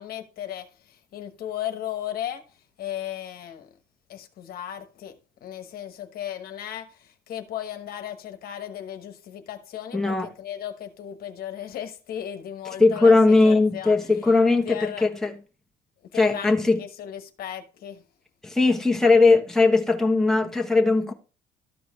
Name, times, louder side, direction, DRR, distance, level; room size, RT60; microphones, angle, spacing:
voice 1, 0.0-2.5 2.8-3.7 4.1-14.3 14.6-15.1 16.1-18.0, left 11 dB, 60° left, 1.2 m, -36 dB
voice 2, 9.9-10.3 12.8-15.3 16.1-16.8 18.4-21.1, left 3 dB, 5° left, 1.1 m, -19 dB
13.0 x 4.7 x 3.6 m
cardioid pair, 110°, 17 cm